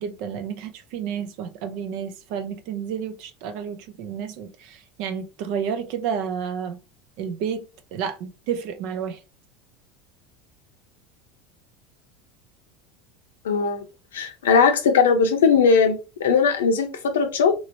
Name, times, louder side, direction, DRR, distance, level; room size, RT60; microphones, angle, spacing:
voice 1, 0.0-6.8 7.2-7.6 7.9-9.2, right 7 dB, 65° right, 0.5 m, -30 dB
voice 2, 13.4-13.8 14.1-17.5, left 5 dB, 90° left, 0.7 m, -19 dB
3.1 x 2.8 x 2.6 m
hypercardioid pair, 95°, 0 cm